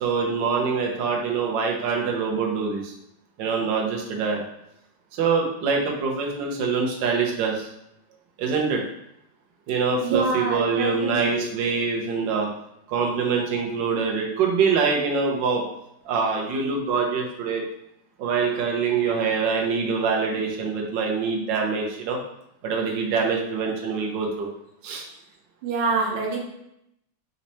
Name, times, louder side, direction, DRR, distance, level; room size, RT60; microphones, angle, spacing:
voice 1, 0.0-2.9 3.4-4.4 5.2-7.7 8.4-8.8 9.7-12.5 12.9-15.6 16.0-17.6 18.2-22.2 22.6-24.5 24.8-25.0, right 5 dB, 70° right, 0 dB, 1.4 m, -24 dB
voice 2, 10.0-11.4 25.6-26.4, right 4 dB, 90° right, -1 dB, 1.7 m, -26 dB
4.2 x 3.0 x 4.0 m, 0.78 s
omnidirectional pair, 2.2 m